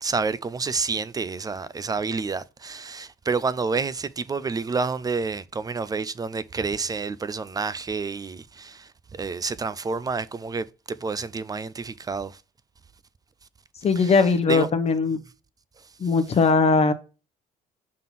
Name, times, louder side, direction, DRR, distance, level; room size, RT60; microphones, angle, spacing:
voice 1, 0.0-12.4 14.0-14.1 14.5-14.7, right 4 dB, 20° right, 0.4 m, -29 dB
voice 2, 13.8-15.2 16.0-16.9, left 4 dB, 35° left, 1.0 m, -20 dB
5.7 x 3.7 x 5.7 m
cardioid pair, 110°, 17 cm